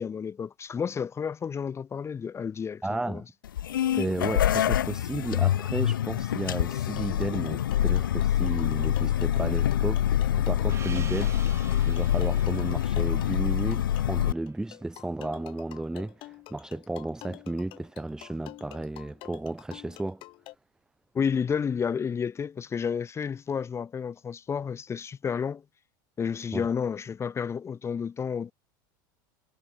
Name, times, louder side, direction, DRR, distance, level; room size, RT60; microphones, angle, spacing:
voice 1, 0.0-2.8 3.1-3.2 21.1-25.6 26.2-28.5, left 6 dB, 25° left, 2.5 m, -31 dB
voice 2, 2.8-3.3 4.0-11.4 11.9-20.2 26.5-26.7, right 2 dB, 5° right, 0.8 m, -33 dB
sound 1, 3.4-14.3, left 11 dB, 90° left, 0.8 m, -26 dB
sound 2, 6.7-20.5, left 19 dB, 50° left, 3.3 m, -48 dB
Gong, 10.7-15.5, right 6 dB, 25° right, 2.4 m, -47 dB
hypercardioid pair, 100°, 11 cm